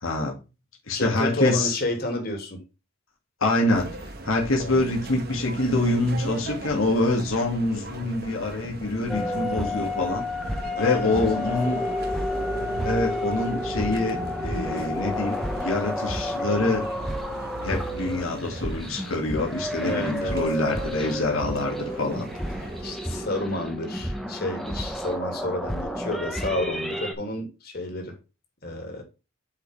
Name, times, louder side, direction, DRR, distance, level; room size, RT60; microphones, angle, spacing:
voice 1, 0.0-0.4 0.9-1.8 3.4-10.2 10.8-11.8 12.8-16.9 17.6-22.2, left 2 dB, 80° left, 2.2 m, -25 dB
voice 2, 0.9-2.6 4.6-4.9 10.8-11.4 11.7-11.9 19.8-20.4 22.8-28.1 28.6-29.0, left 1 dB, 50° left, 2.6 m, -30 dB
sound 1, 3.7-23.0, right 2 dB, 50° right, 1.3 m, -39 dB
sound 2, 9.1-27.1, left 1 dB, ahead, 1.0 m, -30 dB
8.1 x 5.3 x 3.4 m
head